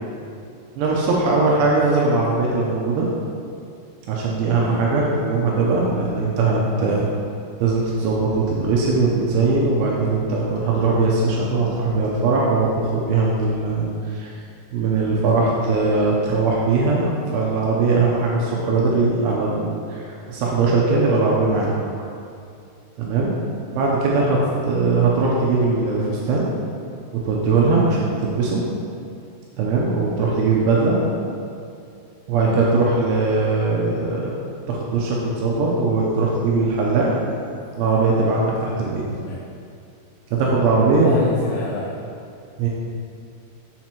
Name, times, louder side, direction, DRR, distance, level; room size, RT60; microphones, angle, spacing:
voice 1, 0.8-3.1 4.1-7.0 7.6-14.4 14.7-21.8 23.0-23.3 23.7-24.4 24.7-26.5 27.1-28.6 29.6-31.0 32.3-34.4 34.7-37.1 37.8-39.0 40.3-41.2 42.6-42.7, right 3 dB, 80° right, -3 dB, 2.8 m, -20 dB
voice 2, 1.3-1.8 4.6-4.8 6.8-7.1 24.2-24.7 27.8-28.0 32.4-32.6 39.2-39.4 41.0-42.0, left 5 dB, 85° left, -3 dB, 2.7 m, -31 dB
7.5 x 6.1 x 2.9 m, 2.4 s
omnidirectional pair, 6.0 m